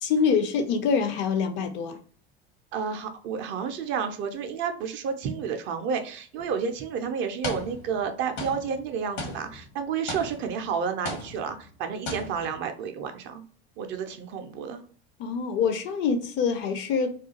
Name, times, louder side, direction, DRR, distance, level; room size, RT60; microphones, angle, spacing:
voice 1, 0.0-2.0 15.2-17.2, left 6 dB, 40° left, 0.4 m, -25 dB
voice 2, 2.7-13.4 13.8-14.8, right 6 dB, 40° right, 0.4 m, -31 dB
sound 1, 6.4-6.6 7.4-8.1 8.4-10.7 11.1-11.8 12.1-12.6, left 2 dB, 75° left, 0.9 m, -37 dB
2.3 x 2.2 x 2.7 m
figure-of-eight pair, 75°, 31 cm